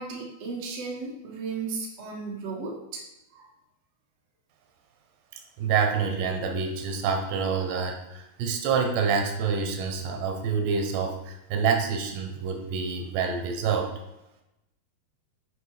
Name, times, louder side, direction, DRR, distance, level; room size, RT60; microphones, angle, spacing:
voice 1, 0.0-3.0 3.3-3.5, right 4 dB, 50° right, -3 dB, 2.3 m, -35 dB
voice 2, 5.6-13.9, right 5 dB, 85° right, 3 dB, 3.3 m, -27 dB
8.8 x 4.9 x 5.0 m, 0.93 s
omnidirectional pair, 4.8 m